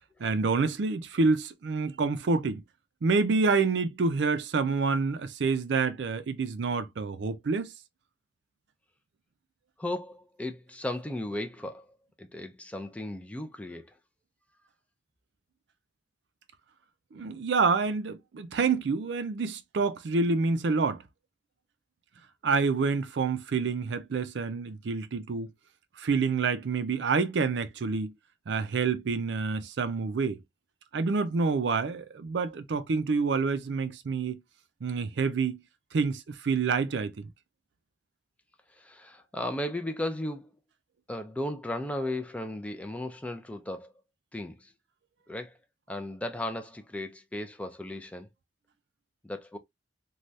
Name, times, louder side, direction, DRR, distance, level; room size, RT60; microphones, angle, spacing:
voice 1, 0.2-2.6 3.0-7.7 17.1-21.0 22.4-25.5 26.0-28.1 28.5-30.4 30.9-34.4 34.8-35.6 35.9-37.3, right 4 dB, 70° right, 0.4 m, -27 dB
voice 2, 9.8-13.9 38.7-40.5 41.1-43.9 44.3-44.7 45.3-45.5 45.9-48.3 49.2-49.6, left 1 dB, 5° left, 0.3 m, -35 dB
3.2 x 2.3 x 2.6 m
head